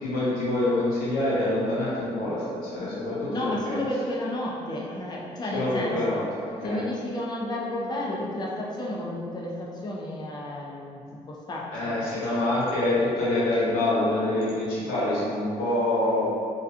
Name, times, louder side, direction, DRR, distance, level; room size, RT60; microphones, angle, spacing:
voice 1, 0.0-3.8 5.5-6.2 6.6-6.8 11.7-16.3, left 1 dB, 80° left, -8 dB, 0.8 m, -26 dB
voice 2, 3.3-6.2 6.6-12.0, left 1 dB, 30° left, -3 dB, 0.5 m, -32 dB
2.3 x 2.2 x 2.6 m, 2.3 s
supercardioid pair, 55°, 15 cm